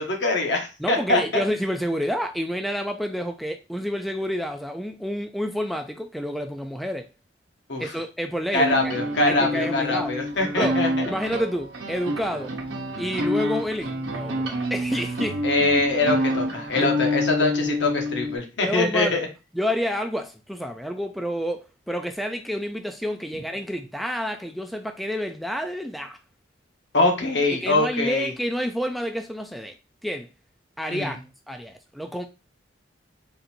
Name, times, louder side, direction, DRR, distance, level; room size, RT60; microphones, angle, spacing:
voice 1, 0.0-1.4 7.7-7.9 8.5-10.9 15.4-19.3 26.9-28.3 30.9-31.1, left 2 dB, 70° left, 1.2 m, -23 dB
voice 2, 0.8-7.1 7.8-8.8 9.2-10.2 10.6-10.8 11.1-12.5 13.0-15.4 16.8-16.9 18.6-19.2 19.5-26.2 27.5-29.8 30.0-30.3 30.8-31.2 31.5-32.3, equal, ahead, 0.3 m, -29 dB
sound 1, 8.5-18.4, left 1 dB, 85° right, 0.9 m, -28 dB
3.9 x 2.6 x 4.2 m
head